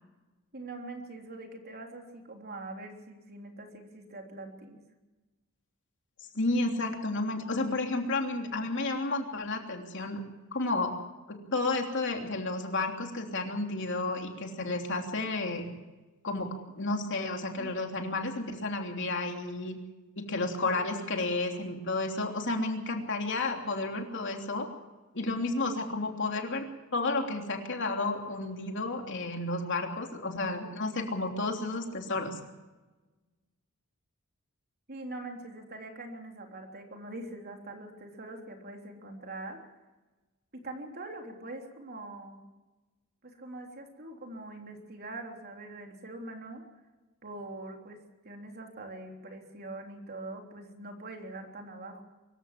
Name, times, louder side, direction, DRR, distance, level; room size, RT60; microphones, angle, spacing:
voice 1, 0.5-4.8 17.6-17.8 20.6-20.7 21.0-21.2 34.9-39.6 40.5-42.4 43.2-46.6 47.2-52.0, right 2 dB, 45° right, 2 dB, 3.4 m, -43 dB
voice 2, 6.3-10.2 10.5-10.9 11.3-15.7 16.2-19.8 20.2-24.7 25.1-32.4, left 2 dB, 55° left, 3 dB, 3.2 m, -32 dB
24.0 x 14.5 x 7.4 m, 1.2 s
head